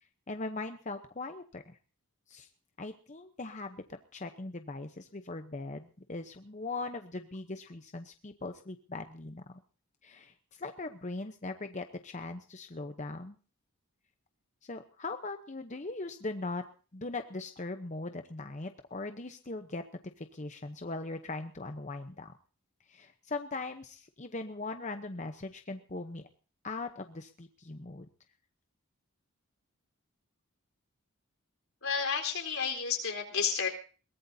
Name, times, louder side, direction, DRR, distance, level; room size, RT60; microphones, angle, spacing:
voice 1, 0.3-1.8 2.3-2.5 2.8-9.5 10.0-13.4 14.6-16.6 16.9-22.3 22.9-26.2 26.6-28.1, left 3 dB, 35° left, 7 dB, 0.8 m, -40 dB
voice 2, 31.8-33.7, left 6 dB, 75° left, 2 dB, 4.0 m, -31 dB
22.0 x 18.5 x 2.8 m, 0.38 s
head